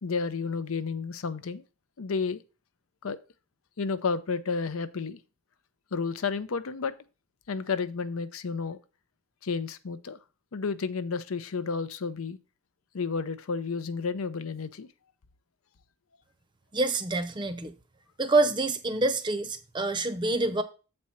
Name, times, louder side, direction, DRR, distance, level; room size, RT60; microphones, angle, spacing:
voice 1, 0.0-1.6 2.0-2.4 3.0-3.2 3.8-5.2 5.9-6.9 7.5-8.8 9.4-10.2 10.5-12.4 12.9-14.9, left 5 dB, 90° left, 0.6 m, -31 dB
voice 2, 16.7-17.7 18.2-20.6, right 2 dB, 20° right, 0.6 m, -26 dB
7.5 x 4.3 x 5.7 m
head